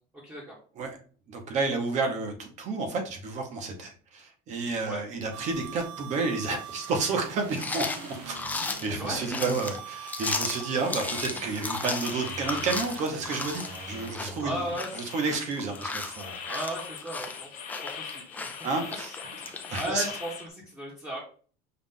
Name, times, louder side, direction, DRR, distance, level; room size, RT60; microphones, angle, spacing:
voice 1, 0.2-0.6 4.9-5.0 8.9-9.2 10.8-11.2 14.4-14.9 16.4-18.5 19.7-21.2, equal, 10° right, -5 dB, 0.9 m, -36 dB
voice 2, 1.3-7.9 8.3-8.4 8.8-14.6 14.9-16.4 18.6-19.1 19.4-20.1, right 4 dB, 40° right, 5 dB, 0.9 m, -31 dB
sound 1, 5.3-14.7, right 7 dB, 70° right, 0.7 m, -43 dB
sound 2, 7.5-20.0, left 3 dB, 10° left, 0.3 m, -35 dB
sound 3, 7.6-20.5, left 7 dB, 45° left, 0.7 m, -44 dB
5.7 x 2.4 x 3.7 m, 0.42 s
cardioid pair, 170°, 19 cm